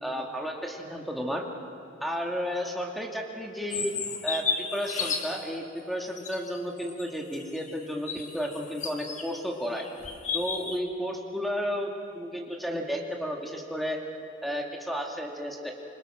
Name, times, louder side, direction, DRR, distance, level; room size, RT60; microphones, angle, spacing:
voice 1, 0.0-1.4 2.0-3.9 4.2-9.8 10.3-14.0 14.4-15.7, equal, ahead, 0 dB, 2.3 m, -32 dB
sound 1, 3.7-5.5 6.2-9.4 9.7-10.8, left 5 dB, 40° left, 1.6 m, -34 dB
27.5 x 25.0 x 6.4 m, 2.6 s
head